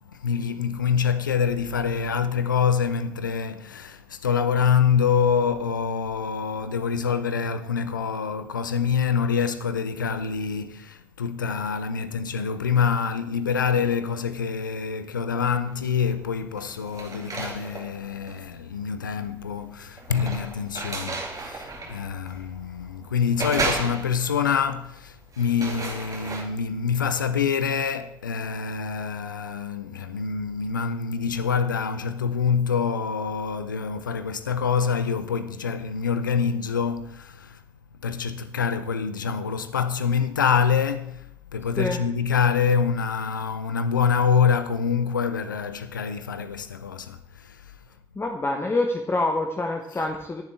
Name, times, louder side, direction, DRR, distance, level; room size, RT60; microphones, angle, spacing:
voice 1, 0.1-37.6 38.0-47.7 49.9-50.0, left 6 dB, 80° left, 0.6 m, -26 dB
sound 1, 15.7-16.1 16.5-26.4, right 3 dB, 35° right, 2.5 m, -34 dB
voice 2, 48.1-50.4, left 2 dB, 25° left, 1.1 m, -26 dB
19.0 x 7.3 x 3.6 m
figure-of-eight pair, 50°, 10 cm